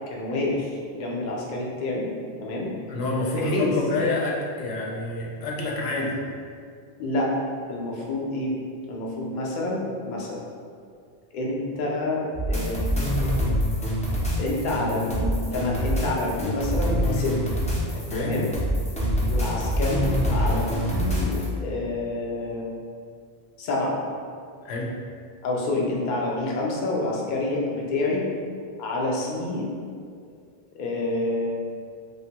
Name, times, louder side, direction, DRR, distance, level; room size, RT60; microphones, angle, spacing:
voice 1, 0.1-2.1 2.4-2.7 3.3-3.7 6.0-6.1 7.0-7.3 7.7-8.5 8.9-10.5 11.3-12.9 14.4-17.3 18.2-18.5 19.2-22.7 23.6-24.0 25.4-28.2 28.8-29.7 30.8-31.5, left 2 dB, 55° left, -3 dB, 0.6 m, -28 dB
voice 2, 2.9-6.1 17.9-18.4 24.6-24.9, left 2 dB, 90° left, -2 dB, 0.8 m, -28 dB
sound 1, 12.3-21.5, equal, 10° left, 0.3 m, -25 dB
3.3 x 2.2 x 2.8 m, 2.2 s
omnidirectional pair, 1.0 m